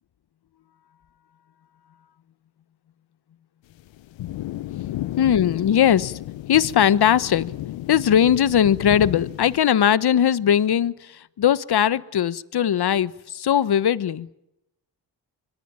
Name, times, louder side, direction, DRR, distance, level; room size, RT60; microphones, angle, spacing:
sound 1, 3.7-9.6, left 15 dB, 75° left, 0.9 m, -33 dB
voice 1, 5.2-6.2 6.5-7.5 7.9-14.3, left 9 dB, 55° left, 1.2 m, -19 dB
26.0 x 21.5 x 8.9 m
supercardioid pair, 55°, 45 cm